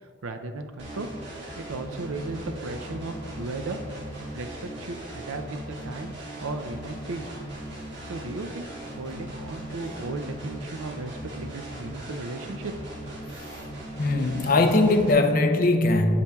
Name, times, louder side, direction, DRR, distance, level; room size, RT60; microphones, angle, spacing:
voice 1, 0.2-1.1 1.6-3.8 4.3-6.1 6.4-7.3 8.0-8.7 9.0-12.7, right 3 dB, 80° right, 0.5 m, -35 dB
sound 1, 0.8-15.1, right 1 dB, 55° right, 1.7 m, -38 dB
voice 2, 14.0-16.2, left 2 dB, 40° left, 0.4 m, -20 dB
8.5 x 7.6 x 2.3 m
head